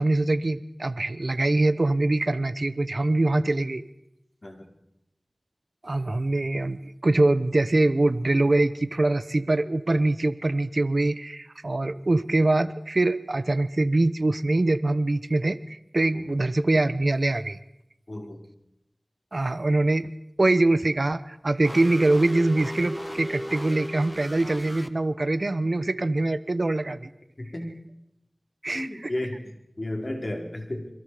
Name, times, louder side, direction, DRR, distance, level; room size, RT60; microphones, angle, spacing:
voice 1, 0.0-3.8 5.8-17.6 19.3-20.1 20.4-27.1 28.6-29.1, right 2 dB, 60° right, 13 dB, 0.9 m, -23 dB
voice 2, 18.1-18.4 27.4-27.7 28.7-30.9, left 1 dB, 55° left, 2 dB, 4.9 m, -34 dB
sound 1, 21.6-24.9, equal, 5° left, 1.4 m, -36 dB
28.5 x 23.0 x 5.0 m, 0.84 s
wide cardioid pair, 45°, 0 cm